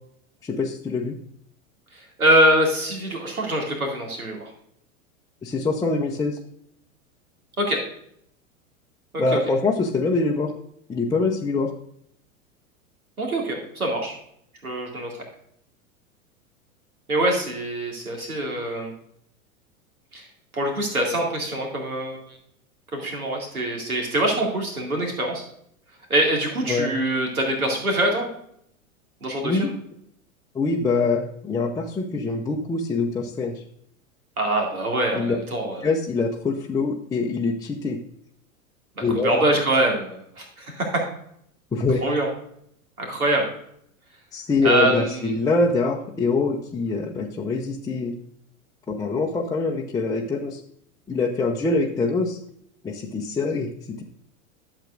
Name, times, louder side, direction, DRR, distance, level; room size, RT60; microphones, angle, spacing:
voice 1, 0.4-1.2 5.4-6.4 9.2-10.5 10.9-11.7 26.7-26.9 29.4-29.7 30.5-33.6 35.1-35.4 35.8-38.0 39.0-39.3 41.7-42.0 44.3-48.1 48.9-50.6 51.1-52.4 52.8-54.0, left 3 dB, 10° left, -2 dB, 0.6 m, -24 dB
voice 2, 1.9-4.5 7.6-7.8 9.1-9.4 13.2-14.1 14.6-15.1 17.1-18.9 20.1-20.2 20.5-22.2 22.9-25.4 26.1-28.3 29.2-29.7 34.4-35.9 39.0-41.0 42.0-42.3 43.0-43.5 44.6-45.3, right 1 dB, 80° right, 0 dB, 2.4 m, -24 dB
11.5 x 7.4 x 2.5 m, 0.70 s
figure-of-eight pair, 90°, 43 cm